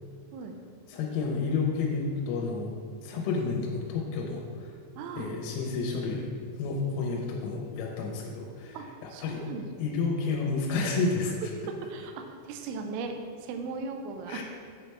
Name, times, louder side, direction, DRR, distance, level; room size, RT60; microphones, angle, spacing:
voice 1, 0.9-2.7 3.0-4.7 5.2-6.3 6.6-8.8 9.2-9.4 9.8-11.3 14.3-14.4, left 4 dB, 80° left, -1 dB, 3.2 m, -30 dB
voice 2, 5.0-5.3 7.1-7.3 8.7-9.6 11.7-13.2 13.4-14.4, right 4 dB, 85° right, 4 dB, 2.6 m, -38 dB
8.4 x 4.3 x 3.3 m, 2.3 s
omnidirectional pair, 5.8 m